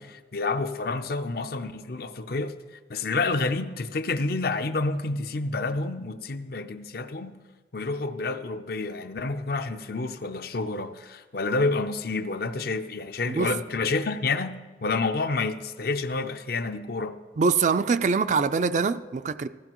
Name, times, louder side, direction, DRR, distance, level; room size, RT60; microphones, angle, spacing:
voice 1, 0.0-2.5 2.9-7.4 7.7-17.2, left 3 dB, 60° left, 0.6 m, -29 dB
voice 2, 17.4-19.5, right 5 dB, 45° right, 0.4 m, -24 dB
16.0 x 14.0 x 3.0 m
head